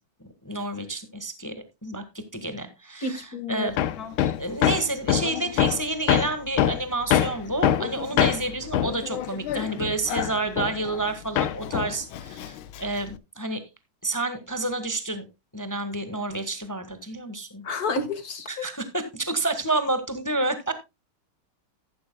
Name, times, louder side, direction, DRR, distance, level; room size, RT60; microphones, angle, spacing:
voice 1, 0.2-1.5 1.8-2.0 2.3-3.8 4.4-13.6 14.0-15.3 15.5-17.6 18.5-20.7, right 2 dB, 10° left, 1.2 m, -29 dB
voice 2, 3.0-3.7 4.0-4.1 17.6-18.5, left 3 dB, 45° left, 2.3 m, -30 dB
Hammer, 3.8-11.1 11.4-13.1, left 11 dB, 75° left, 1.6 m, -25 dB
14.5 x 11.5 x 2.2 m
omnidirectional pair, 2.4 m